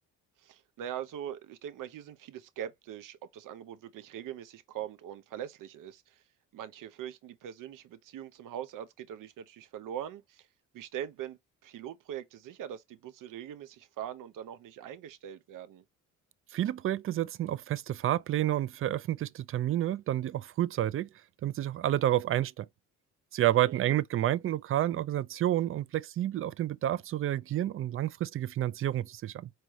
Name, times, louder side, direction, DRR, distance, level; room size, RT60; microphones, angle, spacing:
voice 1, 0.4-6.2 6.5-10.5 10.7-15.8 23.5-23.9, right 10 dB, 65° right, 0.8 m, -42 dB
voice 2, 16.5-21.1 21.4-22.7 23.3-29.5, right 13 dB, 40° right, 0.4 m, -29 dB
4.7 x 3.1 x 3.0 m
supercardioid pair, 65°, 35 cm